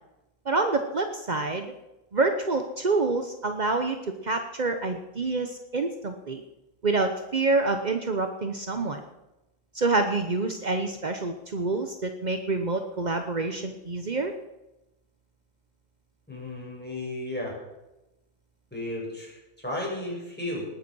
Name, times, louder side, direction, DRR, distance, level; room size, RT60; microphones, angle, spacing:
voice 1, 0.5-1.7 2.1-4.0 4.2-6.4 6.8-9.0 9.7-14.3, right 3 dB, 45° right, 6 dB, 0.5 m, -27 dB
voice 2, 16.3-17.6 18.7-20.7, left 1 dB, 5° left, -4 dB, 6.0 m, -34 dB
19.0 x 9.3 x 6.2 m, 0.96 s
omnidirectional pair, 2.2 m